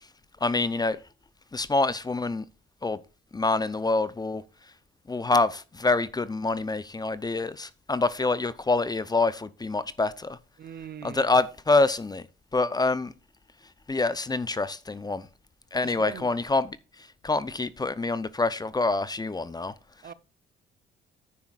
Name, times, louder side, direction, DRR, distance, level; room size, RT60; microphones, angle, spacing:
voice 1, 0.4-1.0 1.5-2.4 2.8-3.0 3.3-4.4 5.1-10.4 11.0-12.2 12.5-13.1 13.9-15.3 15.7-16.8 17.2-19.7, left 3 dB, 20° left, 0.6 m, -26 dB
voice 2, 10.6-11.3 15.8-16.3 20.0-20.1, right 9 dB, 55° right, 0.8 m, -40 dB
10.5 x 9.4 x 2.4 m
cardioid pair, 90°, 20 cm